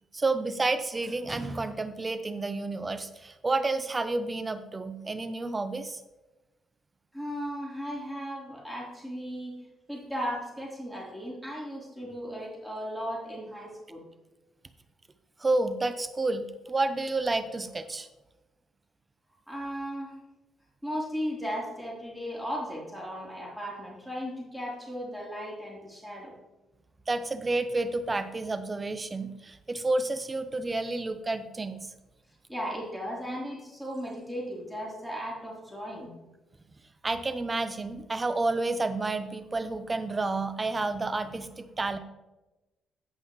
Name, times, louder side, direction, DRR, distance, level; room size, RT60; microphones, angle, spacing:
voice 1, 0.1-6.0 15.4-18.1 27.1-31.9 37.0-42.0, right 2 dB, 25° right, 11 dB, 0.8 m, -30 dB
voice 2, 7.1-9.5 9.9-14.1 19.5-20.2 20.8-26.3 32.5-36.1, equal, ahead, -4 dB, 3.6 m, -36 dB
16.5 x 5.5 x 3.1 m, 1.1 s
cardioid pair, 90°, 0 cm